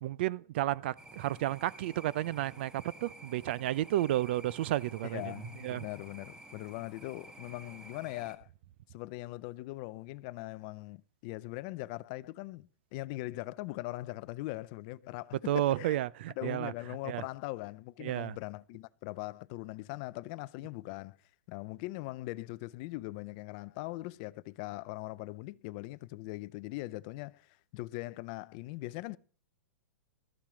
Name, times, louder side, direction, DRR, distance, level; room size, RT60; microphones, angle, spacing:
voice 1, 0.0-5.2 5.6-5.8 15.5-16.7 17.1-17.2 18.0-18.3, right 14 dB, 45° right, 0.4 m, -32 dB
sound 1, 1.0-8.4, right 1 dB, 10° right, 1.0 m, -52 dB
voice 2, 5.0-8.5 8.9-16.0 16.4-21.2 21.5-29.2, left 20 dB, 35° left, 0.4 m, -41 dB
13.0 x 7.4 x 4.9 m
hypercardioid pair, 160°, 8 cm